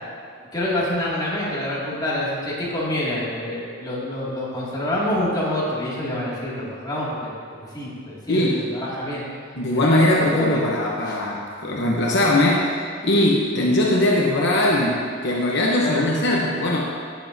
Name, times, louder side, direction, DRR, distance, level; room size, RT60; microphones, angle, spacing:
voice 1, 0.5-7.3 7.7-8.5 8.7-9.2 9.7-10.6 11.1-11.2 15.8-16.1, left 1 dB, 20° left, -8 dB, 2.3 m, -27 dB
voice 2, 8.3-8.6 9.5-16.9, left 1 dB, 60° left, -3 dB, 0.9 m, -20 dB
15.0 x 7.1 x 2.7 m, 2.2 s
head